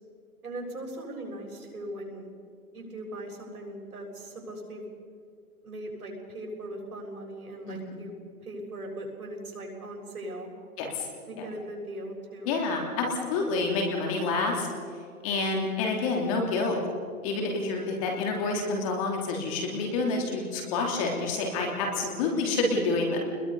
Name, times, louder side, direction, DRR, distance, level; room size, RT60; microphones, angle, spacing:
voice 1, 0.4-2.3 2.7-4.9 5.6-8.1 8.4-10.5 11.3-12.5, right 1 dB, 80° right, 0 dB, 7.4 m, -39 dB
voice 2, 7.7-8.0 10.8-11.1 11.4-11.5 12.4-14.7 15.2-16.8 17.2-23.2, left 3 dB, 25° left, 1 dB, 3.1 m, -28 dB
28.5 x 21.5 x 5.6 m, 2.2 s
hypercardioid pair, 165°, 44 cm